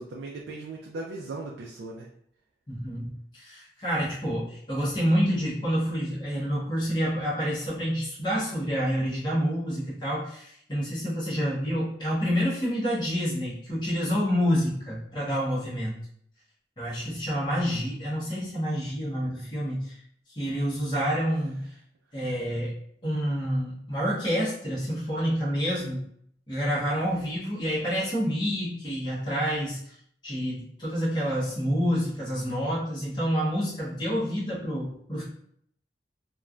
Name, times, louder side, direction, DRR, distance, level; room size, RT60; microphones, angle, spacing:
voice 1, 0.0-2.1, right 2 dB, 85° right, -1 dB, 0.4 m, -38 dB
voice 2, 2.7-16.0 16.8-20.0 20.3-21.6 22.1-22.7 23.0-26.0 26.5-29.9 30.2-35.2, equal, 25° left, -8 dB, 0.9 m, -28 dB
3.1 x 2.2 x 2.4 m, 0.67 s
head